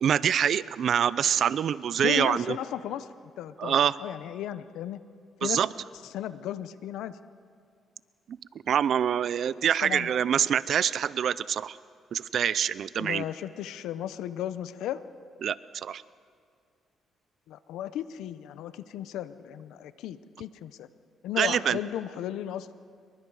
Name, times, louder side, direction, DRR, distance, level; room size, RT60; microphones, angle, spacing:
voice 1, 0.0-2.6 3.6-4.0 5.4-5.7 8.3-8.4 8.7-11.8 12.1-13.2 15.4-16.0 21.4-21.8, right 8 dB, 60° right, 18 dB, 0.6 m, -25 dB
voice 2, 2.0-5.0 5.4-5.6 6.1-7.2 9.8-10.1 13.0-15.0 17.5-20.9 21.2-22.7, left 11 dB, 85° left, 13 dB, 0.8 m, -35 dB
27.5 x 23.0 x 4.9 m, 2.2 s
cardioid pair, 90°, 0 cm